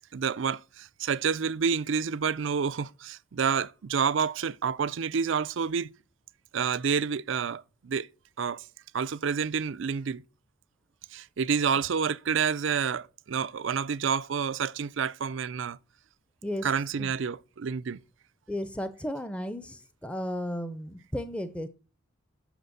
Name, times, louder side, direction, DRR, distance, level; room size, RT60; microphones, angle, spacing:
voice 1, 0.1-5.9 6.5-8.1 8.4-8.7 8.9-10.2 11.1-15.8 16.6-18.0, right 6 dB, 65° right, 0.5 m, -29 dB
voice 2, 18.5-21.7, equal, 5° left, 0.6 m, -34 dB
8.0 x 6.7 x 7.8 m
head